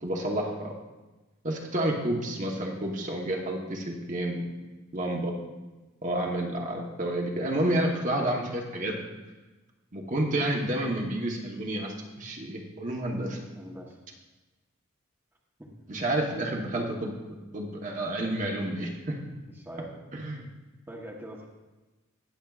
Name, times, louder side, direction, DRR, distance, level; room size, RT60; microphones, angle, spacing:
voice 1, 0.0-0.7 1.4-4.4 4.9-5.3 6.0-9.0 9.9-13.4 15.9-17.2 17.5-19.2 20.1-20.5, right 1 dB, 35° right, 0 dB, 1.0 m, -30 dB
voice 2, 13.3-14.0 15.6-15.7 19.5-20.0 20.9-21.5, right 1 dB, 10° right, -2 dB, 1.0 m, -43 dB
19.5 x 7.2 x 2.4 m, 1.2 s
head